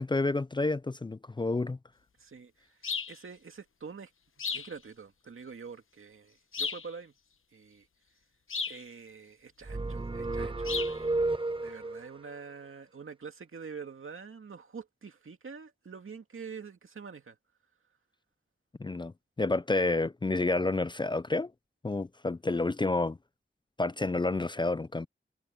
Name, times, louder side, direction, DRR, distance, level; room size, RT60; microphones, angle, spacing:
voice 1, 0.0-1.8 18.8-21.5 21.8-23.2 23.8-25.1, left 2 dB, 25° left, 0.4 m, -29 dB
voice 2, 2.2-2.8 3.1-4.1 4.5-7.1 7.5-7.9 8.7-11.1 11.6-17.4, right 5 dB, 90° right, 2.1 m, -46 dB
sound 1, 2.8-3.2 4.4-4.7 6.5-6.9 8.5-8.8 10.6-11.0, left 5 dB, 90° left, 1.0 m, -34 dB
sound 2, 9.6-12.1, right 2 dB, 25° right, 0.8 m, -32 dB
wide cardioid pair, 90°, 21 cm